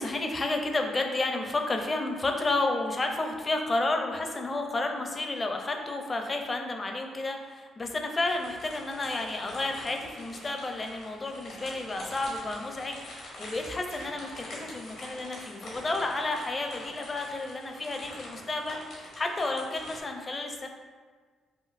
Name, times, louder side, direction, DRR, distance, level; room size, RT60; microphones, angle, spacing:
voice 1, 0.0-20.7, left 2 dB, 30° left, 3 dB, 0.5 m, -31 dB
sound 1, 8.2-20.0, left 1 dB, 75° left, 1.5 m, -45 dB
5.6 x 2.6 x 2.5 m, 1.5 s
cardioid pair, 90°, 0 cm